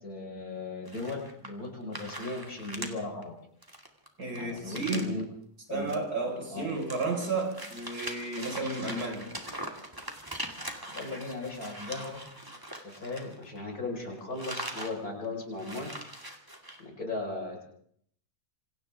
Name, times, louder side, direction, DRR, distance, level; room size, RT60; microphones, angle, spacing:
voice 1, 0.0-3.3 4.3-5.2 5.7-5.9 6.5-6.6 10.9-12.2 12.8-15.9 16.8-17.6, left 2 dB, 70° left, 0 dB, 5.6 m, -37 dB
sound 1, 0.9-1.7 1.9-2.9 3.2-3.3 3.6-5.2 5.7-6.0 6.3-13.7 14.0-15.0 15.2-15.3 15.5-16.8, right 1 dB, 15° right, 2.5 m, -41 dB
voice 2, 4.2-5.2 5.7-9.3, right 3 dB, 80° right, 1 dB, 5.7 m, -32 dB
27.5 x 26.5 x 3.6 m, 0.68 s
omnidirectional pair, 1.7 m